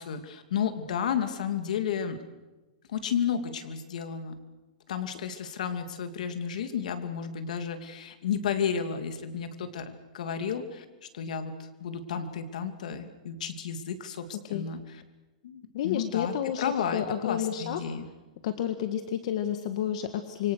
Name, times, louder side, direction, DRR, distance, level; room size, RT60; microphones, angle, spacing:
voice 1, 0.0-2.2 2.9-4.4 4.9-10.8 11.1-14.8 15.4-16.3 16.6-18.1, left 7 dB, 70° left, 9 dB, 2.7 m, -32 dB
voice 2, 15.7-17.8 18.4-20.5, left 10 dB, 50° left, 9 dB, 1.7 m, -30 dB
27.0 x 24.5 x 6.7 m, 1.1 s
supercardioid pair, 165°, 4 cm